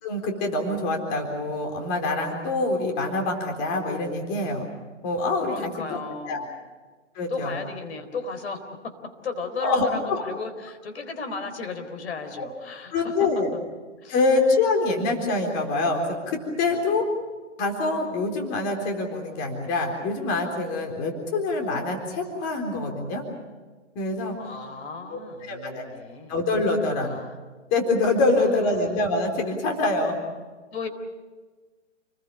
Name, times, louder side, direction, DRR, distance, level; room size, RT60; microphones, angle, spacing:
voice 1, 0.0-4.7 5.0-6.0 6.3-6.4 7.2-7.6 9.6-10.2 12.4-12.5 12.9-13.5 14.1-17.0 17.6-23.2 24.0-24.4 25.1-25.2 25.5-25.8 26.3-27.2 27.7-30.2, left 2 dB, 25° left, 3 dB, 4.1 m, -25 dB
voice 2, 5.4-6.5 7.3-8.9 9.2-13.3 14.0-14.2 16.6-16.8 24.4-26.3 27.0-27.3 28.4-28.5 28.8-28.9 30.7-30.9, left 4 dB, 60° left, 7 dB, 4.1 m, -35 dB
29.5 x 21.0 x 6.8 m, 1.3 s
hypercardioid pair, 150°, 37 cm